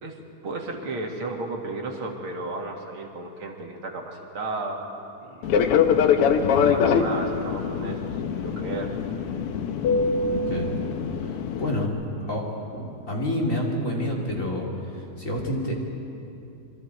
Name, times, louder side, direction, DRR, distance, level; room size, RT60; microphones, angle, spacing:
voice 1, 0.0-4.8 5.2-5.8 6.4-9.0, right 2 dB, 45° right, 1 dB, 2.4 m, -34 dB
Fixed-wing aircraft airplane, 5.4-11.9, left 6 dB, 70° left, 1.4 m, -23 dB
voice 2, 6.4-6.7 10.3-10.7 11.2-14.7 14.9-15.7, left 1 dB, 25° left, -2 dB, 2.7 m, -29 dB
27.0 x 24.0 x 4.6 m, 2.8 s
omnidirectional pair, 3.5 m